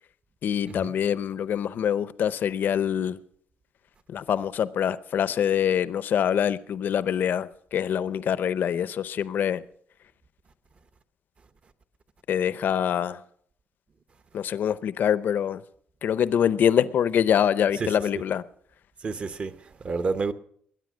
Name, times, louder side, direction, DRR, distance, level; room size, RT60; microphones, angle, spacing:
voice 1, 0.4-3.2 4.1-9.6 12.3-13.2 14.3-15.6 16.0-18.4, left 9 dB, 60° left, 0.6 m, -25 dB
voice 2, 19.0-20.3, right 4 dB, 35° right, 0.8 m, -30 dB
21.0 x 10.0 x 6.2 m
wide cardioid pair, 165°, 4 cm